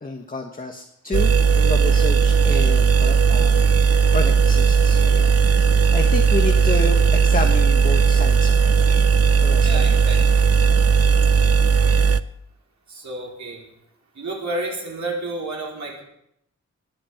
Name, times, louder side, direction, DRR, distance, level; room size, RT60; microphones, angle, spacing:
voice 1, 0.0-3.7 4.1-9.0 9.4-10.2, left 3 dB, 30° left, 3 dB, 1.4 m, -30 dB
sound 1, 1.1-12.2, right 5 dB, 55° right, 0.6 m, -16 dB
voice 2, 9.6-10.4 12.9-13.6 14.2-16.0, right 2 dB, 70° right, -2 dB, 4.5 m, -30 dB
19.5 x 8.6 x 7.2 m, 0.75 s
wide cardioid pair, 110°, 29 cm